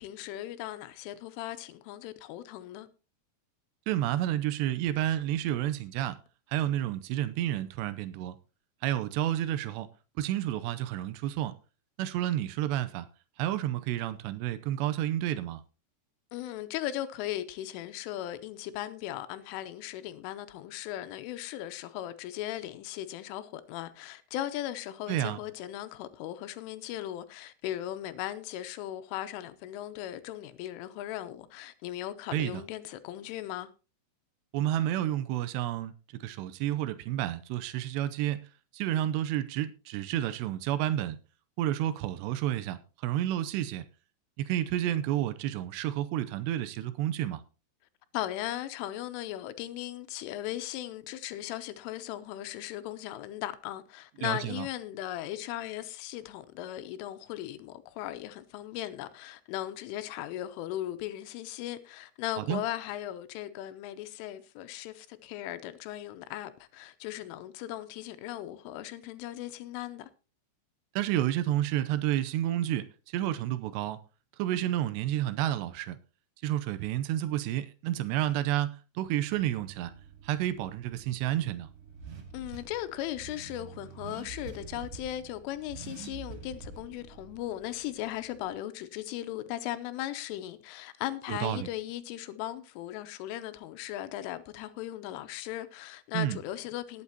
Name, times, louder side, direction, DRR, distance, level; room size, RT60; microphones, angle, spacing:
voice 1, 0.0-2.9 16.3-33.7 48.1-70.1 82.3-97.0, left 13 dB, 90° left, 3.3 m, -38 dB
voice 2, 3.9-6.2 6.5-8.4 8.8-9.9 10.2-11.6 12.0-13.1 13.4-15.6 25.1-25.4 32.3-32.6 34.5-38.4 38.7-41.2 41.6-43.8 44.4-47.4 54.2-54.7 62.4-62.6 71.0-74.0 74.4-76.0 76.4-79.9 80.2-81.7 91.3-91.7 96.1-96.4, right 12 dB, 85° right, 2.5 m, -30 dB
Car / Accelerating revving vroom, 79.3-88.5, right 5 dB, 60° right, 1.5 m, -47 dB
19.0 x 8.7 x 2.8 m
omnidirectional pair, 5.7 m